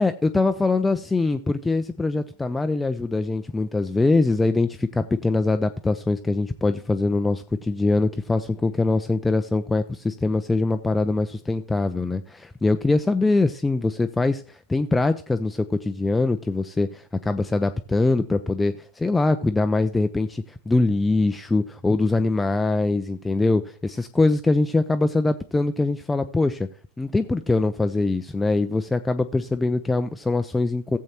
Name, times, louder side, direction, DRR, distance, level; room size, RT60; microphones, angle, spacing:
voice 1, 0.0-26.7 27.0-31.0, left 3 dB, 10° left, 9 dB, 0.4 m, -23 dB
16.5 x 7.4 x 2.9 m, 0.41 s
figure-of-eight pair, 90°, 0 cm